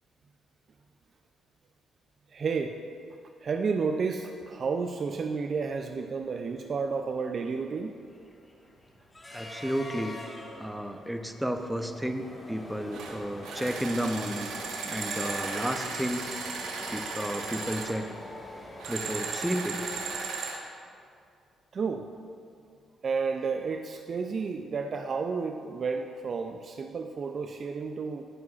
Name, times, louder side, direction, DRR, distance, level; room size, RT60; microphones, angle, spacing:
voice 1, 2.3-2.8 3.4-8.0 21.7-22.1 23.0-28.2, right 5 dB, 45° right, 5 dB, 0.4 m, -31 dB
sound 1, 4.8-4.9 5.2-5.4 5.8-20.2, left 1 dB, 15° left, 1.5 m, -45 dB
voice 2, 9.3-10.1 10.6-14.5 14.9-16.2 16.9-18.1 18.9-19.8, equal, 5° right, 7 dB, 0.6 m, -32 dB
sound 2, 12.9-13.1 13.4-17.9 18.8-20.6, right 4 dB, 90° right, 1.0 m, -36 dB
18.0 x 6.1 x 2.4 m, 2.4 s
cardioid pair, 90°, 0 cm